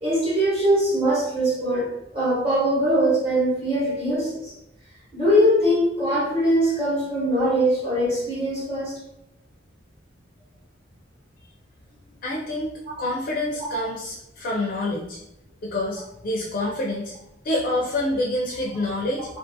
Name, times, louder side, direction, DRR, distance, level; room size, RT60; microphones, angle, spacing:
voice 1, 0.0-4.5 5.1-9.0 13.7-13.8 16.6-16.7, equal, 30° right, -8 dB, 1.0 m, -22 dB
voice 2, 12.2-15.2 15.6-17.1 17.4-19.3, left 1 dB, 50° left, -1 dB, 0.4 m, -27 dB
2.5 x 2.4 x 2.5 m, 0.82 s
head